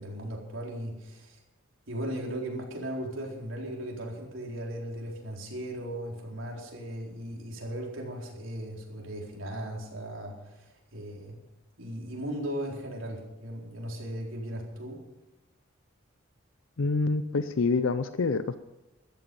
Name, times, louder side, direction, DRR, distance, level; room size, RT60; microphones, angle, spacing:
voice 1, 0.0-1.4 1.9-11.4 11.8-15.0, right 1 dB, 75° right, -1 dB, 4.2 m, -37 dB
voice 2, 16.8-18.6, left 3 dB, 80° left, 12 dB, 0.6 m, -26 dB
14.0 x 13.5 x 5.4 m, 0.99 s
head